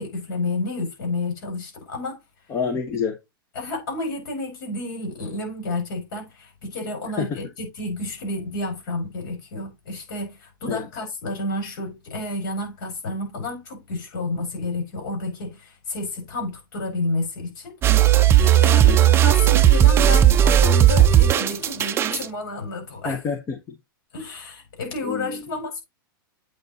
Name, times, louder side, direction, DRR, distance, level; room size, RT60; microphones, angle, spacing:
voice 1, 0.0-2.2 3.6-17.8 18.3-23.2 24.1-25.8, left 2 dB, 60° left, 5.5 m, -30 dB
voice 2, 2.5-3.2 7.2-7.3 10.7-10.9 18.8-19.1 23.0-23.8 25.0-25.4, left 6 dB, 25° left, 1.0 m, -27 dB
sound 1, 17.8-22.3, right 11 dB, 20° right, 0.5 m, -15 dB
8.1 x 4.1 x 4.0 m
hypercardioid pair, 130°, 12 cm